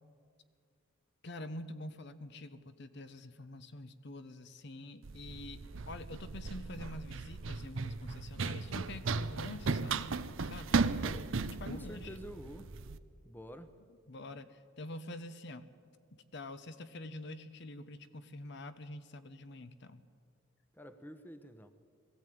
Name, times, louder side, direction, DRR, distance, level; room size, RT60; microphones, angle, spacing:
voice 1, 1.2-10.9 11.4-12.2 14.1-15.7 16.3-20.0, left 1 dB, 55° left, 11 dB, 0.9 m, -46 dB
Run, 5.0-13.0, right 4 dB, 65° right, 0.7 m, -36 dB
voice 2, 11.0-11.3 11.6-12.7 13.2-13.7 20.7-21.7, equal, 10° left, 10 dB, 0.8 m, -48 dB
20.5 x 15.0 x 9.3 m, 2.1 s
head